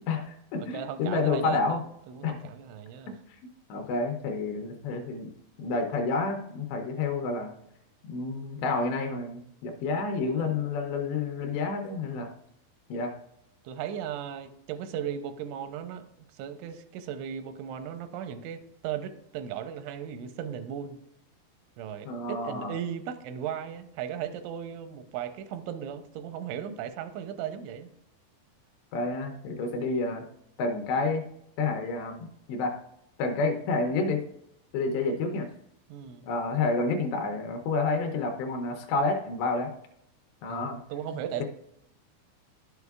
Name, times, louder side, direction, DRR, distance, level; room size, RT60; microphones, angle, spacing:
voice 1, 0.1-1.8 2.2-2.4 3.1-3.2 3.7-5.3 5.6-7.5 8.1-12.3 12.9-13.1 22.1-22.8 28.9-30.2 30.6-31.2 31.6-32.7 33.2-34.2 34.7-35.5 36.2-39.7 40.4-40.8, left 3 dB, 80° left, 4 dB, 2.7 m, -29 dB
voice 2, 0.6-3.1 10.2-10.6 13.6-16.1 16.3-21.0 21.8-27.9 35.9-36.3 40.5-41.4, right 9 dB, 85° right, 9 dB, 3.0 m, -37 dB
11.0 x 8.1 x 2.3 m, 0.77 s
omnidirectional pair, 5.4 m